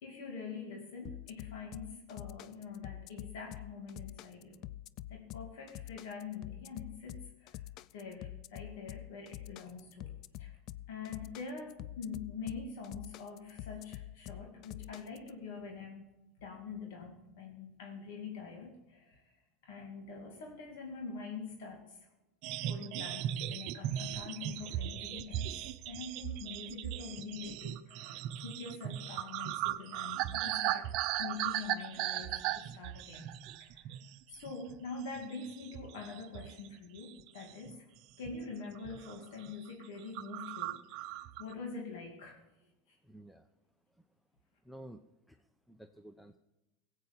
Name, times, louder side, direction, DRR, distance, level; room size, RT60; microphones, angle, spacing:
voice 1, 0.0-4.6 5.1-7.6 7.9-10.6 10.9-16.1 16.4-19.4 19.6-22.0 22.6-25.5 25.8-30.9 31.2-34.0 34.3-37.9 38.2-42.4 42.9-43.0, left 4 dB, 70° left, 1 dB, 2.4 m, -45 dB
sound 1, 1.0-15.3, left 14 dB, 55° left, 0.4 m, -46 dB
sound 2, 22.4-34.1 34.5-34.7 35.1-36.7 37.0-37.7 38.2-38.5 38.8-39.1 39.4-39.5 39.8-39.9 40.2-41.5, right 13 dB, 55° right, 0.6 m, -38 dB
voice 2, 43.0-43.5 44.0-44.1 44.6-46.4, right 1 dB, ahead, 8 dB, 0.7 m, -53 dB
17.0 x 8.2 x 5.5 m, 0.98 s
hypercardioid pair, 95°, 0 cm